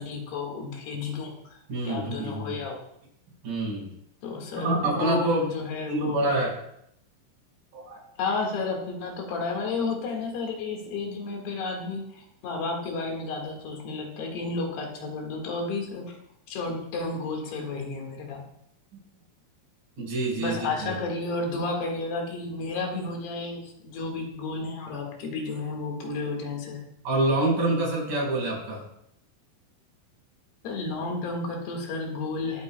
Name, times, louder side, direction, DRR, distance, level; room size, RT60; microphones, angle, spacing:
voice 1, 0.0-1.6 1.9-2.8 4.2-6.3 8.2-16.2 16.5-18.4 20.4-26.8 30.6-32.6, left 3 dB, 85° left, 1 dB, 3.9 m, -32 dB
voice 2, 1.7-2.6 3.4-3.9 4.5-5.4 5.9-6.5 7.7-8.0 20.0-21.0 27.0-28.8, right 2 dB, 55° right, -4 dB, 6.6 m, -26 dB
22.0 x 9.0 x 2.3 m, 0.75 s
omnidirectional pair, 4.5 m